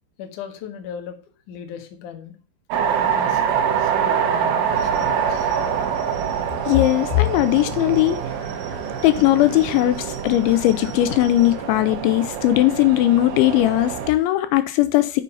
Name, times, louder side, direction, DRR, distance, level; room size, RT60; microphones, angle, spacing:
voice 1, 0.2-1.2 1.5-2.3 3.0-5.5, left 7 dB, 60° left, 2.2 m, -37 dB
sound 1, 2.7-14.1, right 7 dB, 75° right, 3.1 m, -25 dB
sound 2, 4.7-11.6, right 5 dB, 55° right, 3.3 m, -39 dB
voice 2, 6.7-8.2 9.0-15.2, left 15 dB, 85° left, 2.9 m, -18 dB
7.2 x 7.0 x 5.4 m
omnidirectional pair, 5.4 m